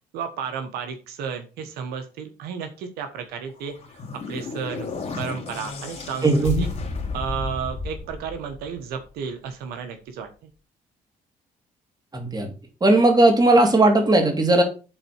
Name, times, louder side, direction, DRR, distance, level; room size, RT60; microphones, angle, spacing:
voice 1, 0.1-3.7 4.3-6.7 7.1-10.5, right 6 dB, 90° right, 7 dB, 1.3 m, -33 dB
sound 1, 3.6-8.9, left 4 dB, 45° left, 2.7 m, -32 dB
voice 2, 6.2-6.7 12.1-12.5 12.8-14.6, right 2 dB, 25° right, 4 dB, 2.7 m, -17 dB
7.7 x 4.2 x 6.4 m, 0.34 s
cardioid pair, 90°, 16 cm